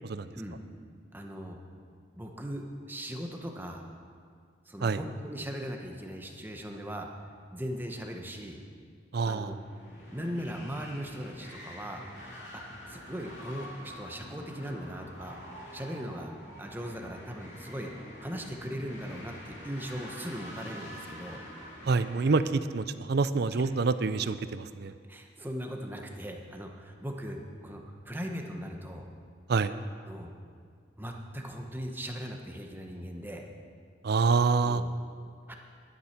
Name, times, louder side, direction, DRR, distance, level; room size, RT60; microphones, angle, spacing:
voice 1, 1.1-1.6 2.1-3.9 4.7-7.1 7.5-8.6 9.2-9.6 10.1-12.0 12.5-15.4 15.7-16.3 16.6-17.9 18.2-21.4 23.6-23.7 25.1-29.1 30.1-30.3 31.0-33.4 34.6-34.9 35.5-35.6, equal, 10° right, 2 dB, 1.0 m, -39 dB
voice 2, 9.1-9.5 21.9-24.9 29.5-29.7 34.0-34.8, right 4 dB, 60° right, 13 dB, 0.5 m, -26 dB
sound 1, 9.5-22.4, equal, 65° left, 2.8 m, -46 dB
11.5 x 9.7 x 5.9 m, 2.1 s
head